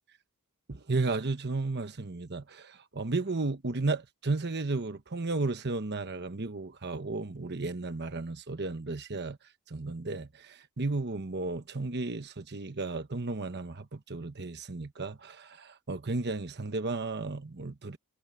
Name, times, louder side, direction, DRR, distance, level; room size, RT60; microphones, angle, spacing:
voice 1, 0.7-9.4 9.7-18.0, right 3 dB, 50° right, 1.1 m, -34 dB
head